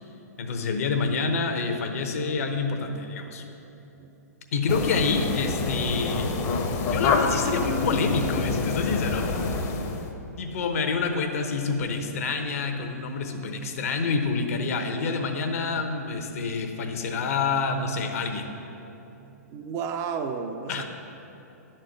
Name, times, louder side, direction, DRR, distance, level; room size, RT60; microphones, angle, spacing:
voice 1, 0.4-3.4 4.5-6.3 6.8-9.3 10.4-18.5 20.7-20.8, left 4 dB, 60° left, 5 dB, 0.9 m, -27 dB
sound 1, 4.7-10.1, left 4 dB, 35° left, 0.8 m, -27 dB
voice 2, 19.5-20.8, right 6 dB, 30° right, 6 dB, 0.5 m, -32 dB
10.5 x 4.5 x 6.3 m, 3.0 s
figure-of-eight pair, 115°, 9 cm